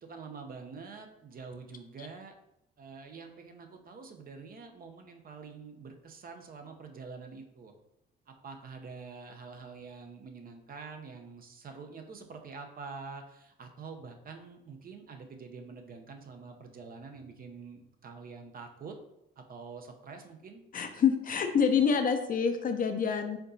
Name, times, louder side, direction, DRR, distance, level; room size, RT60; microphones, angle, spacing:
voice 1, 0.0-2.3 2.8-7.7 8.3-19.0 19.4-20.6, right 4 dB, 50° right, 4 dB, 0.6 m, -46 dB
voice 2, 20.7-23.4, left 6 dB, 45° left, 7 dB, 0.5 m, -27 dB
4.4 x 3.8 x 2.7 m, 0.82 s
cardioid pair, 90°, 20 cm